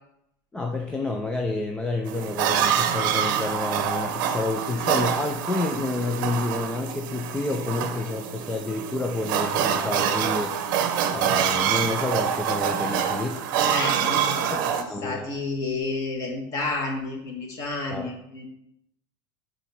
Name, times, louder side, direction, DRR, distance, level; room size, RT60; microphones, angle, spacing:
voice 1, 0.5-10.6 11.1-13.4 14.5-15.3 17.9-18.1, left 2 dB, 5° left, 2 dB, 0.4 m, -29 dB
sound 1, 2.1-14.8, right 8 dB, 60° right, 0.7 m, -26 dB
voice 2, 13.6-14.7 15.0-18.4, left 3 dB, 30° left, 0 dB, 1.6 m, -30 dB
7.0 x 4.1 x 5.7 m, 0.80 s
supercardioid pair, 170°, 12 cm